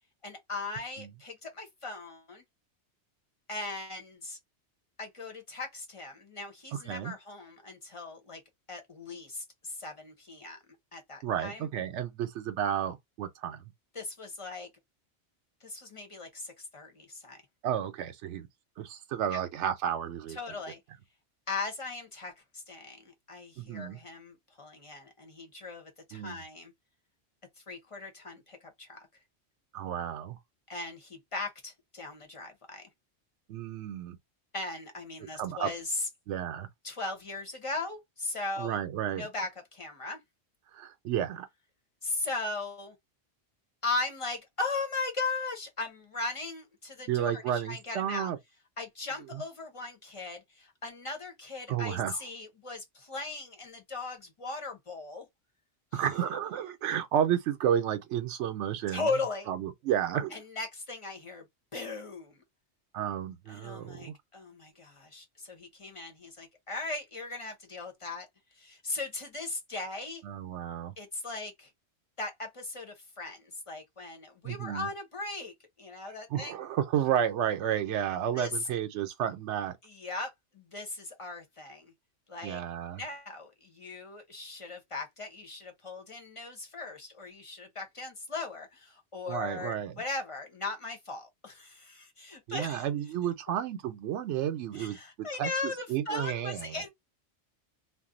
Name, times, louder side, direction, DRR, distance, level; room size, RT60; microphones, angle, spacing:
voice 1, 0.2-2.4 3.5-4.4 5.0-8.4 8.7-10.6 10.9-11.7 13.9-14.7 15.6-17.4 19.3-19.4 20.3-20.8 21.5-26.7 27.7-29.0 30.7-32.8 34.5-36.1 36.8-38.8 39.1-40.2 42.0-43.0 43.8-48.3 48.8-55.3 55.9-56.0 58.9-59.5 60.3-61.4 61.7-62.4 63.5-68.3 68.6-70.2 71.0-71.7 72.2-75.5 75.8-76.6 78.3-78.5 79.8-81.9 82.3-82.6 82.9-92.9 94.7-96.9, left 3 dB, 35° left, 0.7 m, -38 dB
voice 2, 6.7-7.1 11.2-13.6 17.6-18.5 18.8-20.4 23.6-24.0 26.1-26.4 29.7-30.4 33.5-34.2 35.3-35.7 36.3-36.7 38.6-39.3 40.7-41.5 47.1-48.4 49.3-49.4 51.7-52.2 55.9-59.1 59.5-60.4 62.9-64.1 70.2-70.9 74.4-74.9 76.3-79.8 82.4-83.0 89.3-90.0 92.5-96.8, right 10 dB, 85° right, 0.9 m, -32 dB
2.5 x 2.0 x 3.7 m
omnidirectional pair, 1.2 m